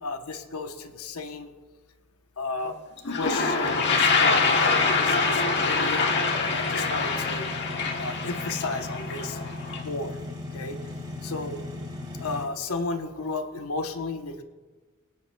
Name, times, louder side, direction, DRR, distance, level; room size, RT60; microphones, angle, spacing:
voice 1, 0.0-1.5 2.4-2.8 3.0-6.1 6.4-7.5 8.0-9.4 9.8-10.8 11.2-11.6 12.2-14.4, left 3 dB, 80° left, 7 dB, 0.9 m, -34 dB
Toilet flush, 2.7-2.8 3.0-9.8, left 4 dB, 55° left, 1.5 m, -25 dB
sound 1, 3.6-12.4, left 2 dB, 20° right, 1.8 m, -37 dB
21.0 x 9.9 x 2.2 m, 1.3 s
head